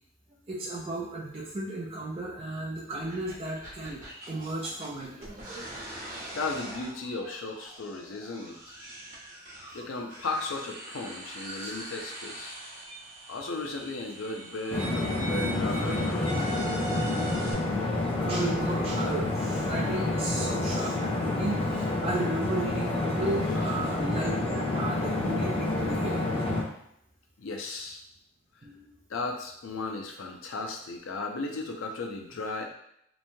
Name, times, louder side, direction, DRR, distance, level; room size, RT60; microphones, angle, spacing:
voice 1, 0.5-4.0 4.3-6.2 18.2-26.2 28.6-28.9, right 2 dB, 30° right, -5 dB, 0.4 m, -34 dB
sound 1, 3.0-17.5, right 2 dB, 45° right, 0.9 m, -42 dB
voice 2, 6.3-8.6 9.7-12.6 13.3-16.8 23.4-23.8 27.4-28.0 29.1-32.7, left 3 dB, 90° left, 3 dB, 0.5 m, -36 dB
sound 2, 14.7-26.6, left 2 dB, 30° left, 0.5 m, -28 dB
3.0 x 2.2 x 2.6 m, 0.74 s
head